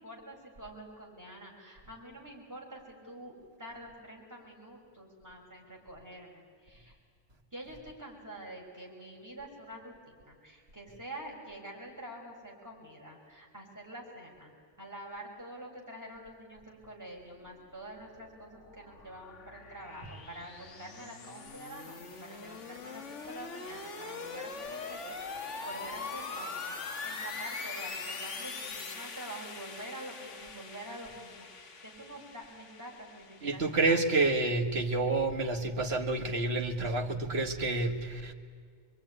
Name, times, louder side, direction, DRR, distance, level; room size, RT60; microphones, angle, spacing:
voice 1, 0.0-3.3 3.6-7.0 7.5-14.5 14.8-34.0, right 1 dB, 15° right, -3 dB, 5.9 m, -47 dB
sound 1, 17.9-33.9, left 4 dB, 65° left, 1.8 m, -42 dB
voice 2, 33.4-38.3, right 3 dB, 50° right, 3 dB, 2.1 m, -29 dB
25.5 x 22.5 x 9.9 m, 2.1 s
omnidirectional pair, 1.3 m